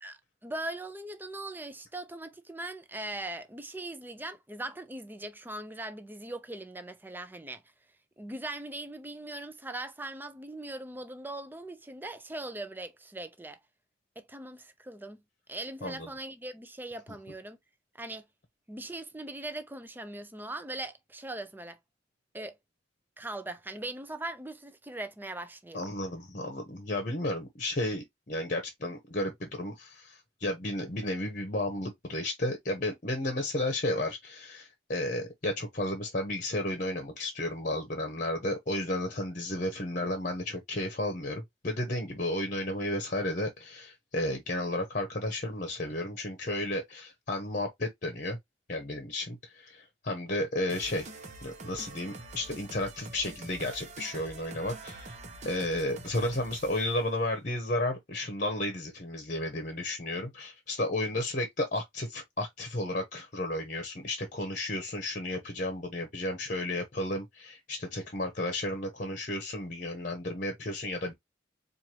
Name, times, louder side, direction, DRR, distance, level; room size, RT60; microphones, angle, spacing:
voice 1, 0.0-7.6 8.2-13.6 14.2-15.2 15.5-17.6 18.0-18.3 18.7-21.8 22.3-22.5 23.2-25.9, right 2 dB, 10° right, 0.6 m, -40 dB
voice 2, 25.7-48.4 48.7-51.1 51.4-55.1 55.4-71.1, left 1 dB, 45° left, 1.0 m, -33 dB
sound 1, 50.7-57.0, right 2 dB, 40° right, 1.0 m, -45 dB
4.5 x 2.6 x 3.0 m
head